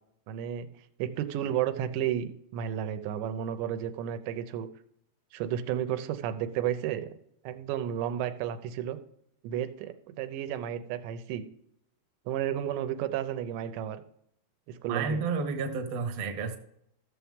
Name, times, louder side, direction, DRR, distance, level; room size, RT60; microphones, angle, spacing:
voice 1, 0.3-0.7 1.0-4.7 5.3-7.1 7.4-9.0 9.4-11.4 12.3-14.0 14.7-15.2, right 10 dB, 90° right, 9 dB, 3.1 m, -32 dB
voice 2, 14.9-16.6, right 4 dB, 60° right, 4 dB, 1.6 m, -31 dB
15.0 x 7.1 x 3.6 m, 0.74 s
omnidirectional pair, 4.9 m